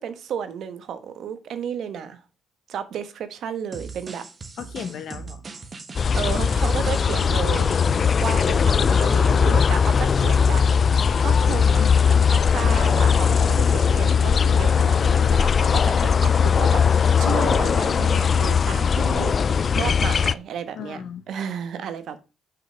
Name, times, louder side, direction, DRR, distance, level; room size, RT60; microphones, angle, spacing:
voice 1, 0.0-2.2 2.7-4.3 6.1-7.8 8.2-10.6 10.9-11.8 12.3-22.2, right 8 dB, 65° right, 1.1 m, -32 dB
sound 1, 3.7-9.3, right 4 dB, 35° right, 1.3 m, -39 dB
voice 2, 4.6-5.5 11.8-12.3 20.7-21.2, left 8 dB, 65° left, 0.9 m, -36 dB
sound 2, 5.9-20.3, left 6 dB, 45° left, 0.3 m, -19 dB
6.0 x 5.0 x 5.2 m
supercardioid pair, 70°, 0 cm